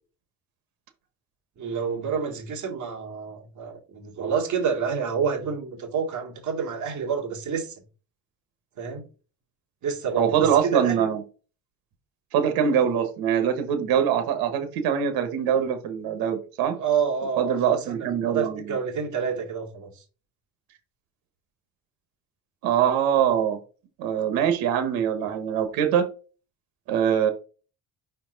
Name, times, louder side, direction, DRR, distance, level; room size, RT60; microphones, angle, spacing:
voice 1, 1.6-7.7 8.8-9.0 9.8-11.1 16.7-20.0, right 6 dB, 55° right, 2.3 m, -28 dB
voice 2, 10.2-11.2 12.3-16.8 17.4-18.7 22.6-23.6 24.0-26.0 26.9-27.3, right 8 dB, 85° right, 1.3 m, -23 dB
5.7 x 4.4 x 3.9 m
cardioid pair, 110°, 35 cm